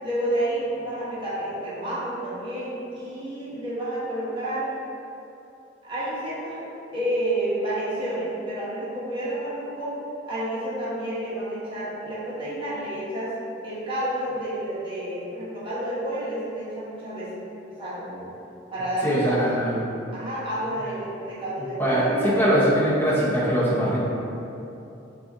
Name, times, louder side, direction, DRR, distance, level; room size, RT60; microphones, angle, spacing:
voice 1, 0.0-4.7 5.8-6.7 6.9-9.9 10.3-13.3 13.6-17.3 17.8-18.3 18.7-19.5 20.1-22.4, right 1 dB, 25° right, -10 dB, 1.1 m, -30 dB
voice 2, 19.0-19.8 21.8-24.0, equal, 10° left, -9 dB, 0.9 m, -22 dB
6.5 x 2.5 x 2.7 m, 2.8 s
head